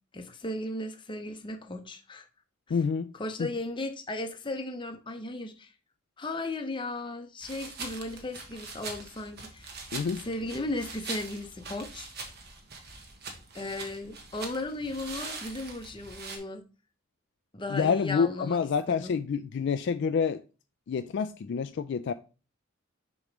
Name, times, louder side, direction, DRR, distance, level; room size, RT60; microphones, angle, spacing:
voice 1, 0.1-2.3 2.7-2.8 3.1-5.7 6.2-9.7 10.2-12.1 13.5-16.6 17.5-18.6 18.9-19.1, left 2 dB, 25° left, 0.7 m, -36 dB
voice 2, 2.7-3.1 3.4-3.5 9.9-10.2 17.7-20.4 20.9-22.1, left 6 dB, 55° left, 0.3 m, -28 dB
sound 1, 7.4-16.4, right 3 dB, 50° right, 1.2 m, -42 dB
6.5 x 3.1 x 5.1 m
head